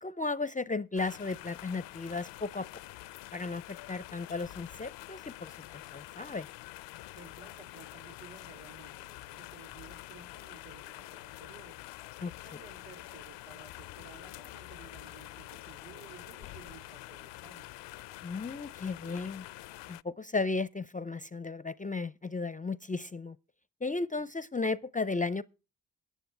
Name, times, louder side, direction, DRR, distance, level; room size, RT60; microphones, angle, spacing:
voice 1, 0.0-2.7 3.3-6.5 12.2-12.3 18.2-19.5 19.9-23.4 23.8-25.4, left 3 dB, 20° left, 0.5 m, -35 dB
sound 1, 1.0-20.0, left 17 dB, 75° left, 0.5 m, -47 dB
voice 2, 7.0-17.7, right 5 dB, 65° right, 3.3 m, -55 dB
15.5 x 10.0 x 3.3 m
supercardioid pair, 55°, 43 cm